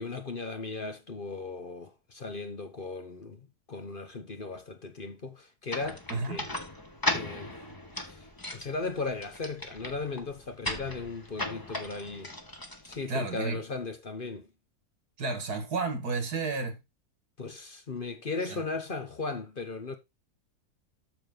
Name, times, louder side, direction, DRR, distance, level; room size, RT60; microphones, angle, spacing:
voice 1, 0.0-6.6 7.1-7.6 8.0-8.3 8.5-12.3 12.8-14.5 17.4-20.0, left 3 dB, 40° left, 1.1 m, -37 dB
sound 1, 5.7-13.5, left 1 dB, 15° left, 1.3 m, -37 dB
voice 2, 6.1-6.5 13.1-13.6 15.2-16.8 18.5-18.6, right 3 dB, 85° right, 2.4 m, -32 dB
8.0 x 6.9 x 3.9 m
omnidirectional pair, 1.6 m